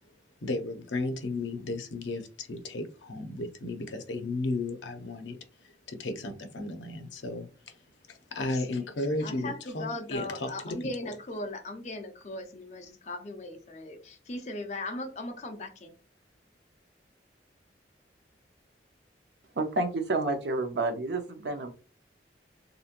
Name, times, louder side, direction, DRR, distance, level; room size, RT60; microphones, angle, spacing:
voice 1, 0.4-7.8 8.1-10.7, left 2 dB, 85° left, 0.6 m, -34 dB
voice 2, 8.4-8.9 9.2-16.0, left 2 dB, 40° left, 0.5 m, -38 dB
voice 3, 19.6-21.7, right 2 dB, 70° right, 0.6 m, -29 dB
2.9 x 2.7 x 2.4 m
head